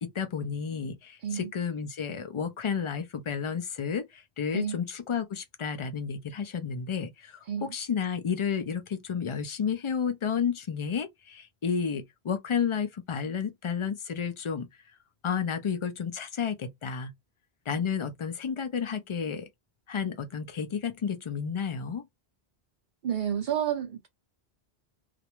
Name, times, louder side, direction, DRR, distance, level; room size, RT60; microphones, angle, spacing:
voice 1, 0.0-14.7 15.2-17.1 17.7-19.5 19.9-22.0, left 6 dB, 50° left, 0.3 m, -31 dB
voice 2, 23.0-24.1, right 9 dB, 60° right, 0.6 m, -30 dB
2.4 x 2.1 x 2.9 m
omnidirectional pair, 1.0 m